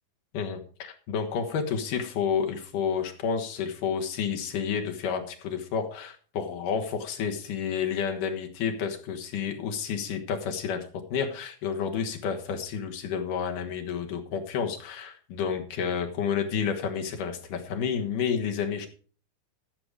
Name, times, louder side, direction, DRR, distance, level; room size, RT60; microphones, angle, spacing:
voice 1, 0.3-18.9, left 7 dB, 75° left, 4 dB, 3.0 m, -30 dB
14.0 x 7.0 x 4.9 m, 0.42 s
omnidirectional pair, 3.9 m